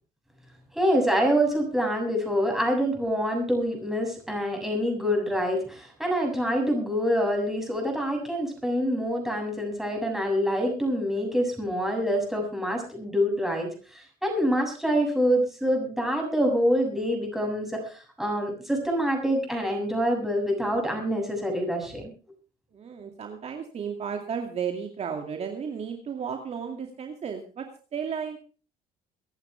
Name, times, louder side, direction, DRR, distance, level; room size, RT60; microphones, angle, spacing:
voice 1, 0.7-22.0, equal, ahead, 1 dB, 7.3 m, -26 dB
voice 2, 22.7-27.7 27.9-28.4, right 7 dB, 40° right, 4 dB, 2.4 m, -33 dB
24.0 x 11.0 x 3.5 m, 0.37 s
cardioid pair, 115°, 16 cm